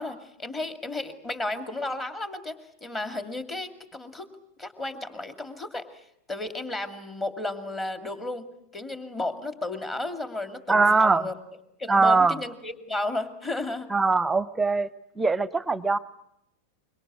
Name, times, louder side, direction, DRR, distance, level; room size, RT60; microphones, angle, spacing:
voice 1, 0.0-4.3 4.6-8.5 8.7-11.4 11.8-13.9, left 2 dB, 15° left, 9 dB, 2.4 m, -33 dB
voice 2, 10.7-11.3 11.9-12.4 13.9-14.9 15.2-16.0, right 3 dB, 10° right, 19 dB, 0.9 m, -21 dB
25.0 x 23.0 x 8.3 m, 0.79 s
figure-of-eight pair, 90°, 0 cm